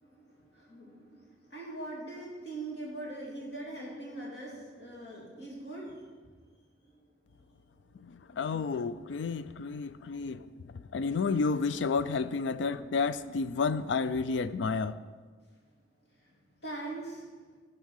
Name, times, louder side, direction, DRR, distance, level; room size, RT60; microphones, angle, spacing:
voice 1, 0.0-6.0 6.8-6.9 10.2-10.3 16.6-17.2, right 2 dB, 65° left, -4 dB, 2.9 m, -42 dB
voice 2, 8.0-10.5 10.9-15.0, left 4 dB, 85° left, 14 dB, 0.4 m, -31 dB
11.5 x 4.6 x 6.5 m, 1.5 s
head